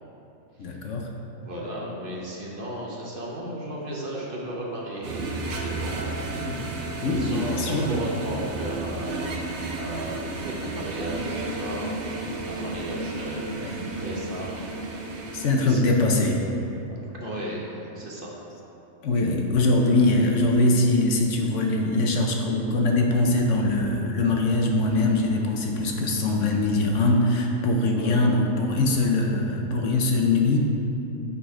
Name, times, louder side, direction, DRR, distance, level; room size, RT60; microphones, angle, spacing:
voice 1, 0.6-1.1 6.4-6.6 7.0-7.9 13.6-13.9 15.3-16.4 19.0-30.6, left 2 dB, 65° left, 1 dB, 1.0 m, -22 dB
voice 2, 1.4-6.2 7.0-12.1 12.4-14.7 15.5-15.8 16.9-18.4 19.9-20.0 28.0-28.3, right 1 dB, 45° right, -4 dB, 1.1 m, -35 dB
sound 1, 5.0-15.5, right 3 dB, 80° right, 1.2 m, -32 dB
8.8 x 4.1 x 4.8 m, 2.9 s
omnidirectional pair, 1.4 m